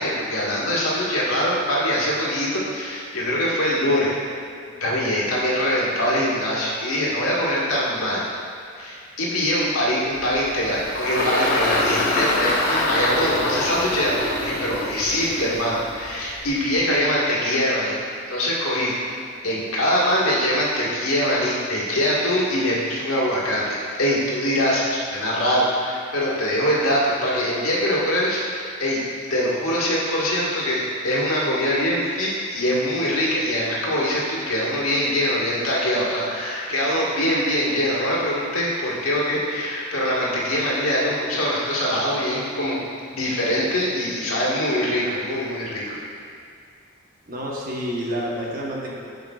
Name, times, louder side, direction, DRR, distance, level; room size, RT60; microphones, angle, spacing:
voice 1, 0.0-4.1 4.8-8.2 8.8-18.0 18.3-18.9 19.4-29.0 29.3-42.8 43.1-46.0, equal, 85° left, -6 dB, 1.6 m, -23 dB
Engine, 10.1-16.7, left 2 dB, 40° left, 0.9 m, -25 dB
voice 2, 47.3-49.0, equal, 40° right, -3 dB, 1.0 m, -29 dB
11.5 x 5.2 x 2.4 m, 2.3 s
head